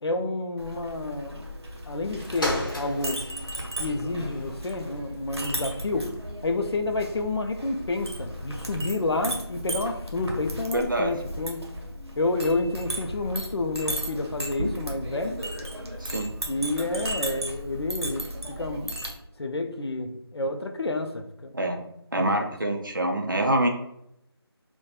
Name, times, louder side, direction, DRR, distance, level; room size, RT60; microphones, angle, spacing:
voice 1, 0.0-1.5 1.9-3.2 3.8-6.1 6.4-11.7 12.2-15.4 16.5-19.0 19.4-21.5 23.6-23.7, left 2 dB, 70° left, 0.4 m, -29 dB
Chink clink, 0.6-19.1, right 1 dB, 75° right, 0.7 m, -35 dB
sound 1, 2.1-11.7 12.4-12.5, left 1 dB, 50° left, 0.8 m, -39 dB
voice 2, 10.7-11.1 16.0-16.3 21.5-21.8 22.1-23.7, right 1 dB, 50° right, 0.4 m, -25 dB
2.3 x 2.1 x 2.8 m
figure-of-eight pair, 180°, 14 cm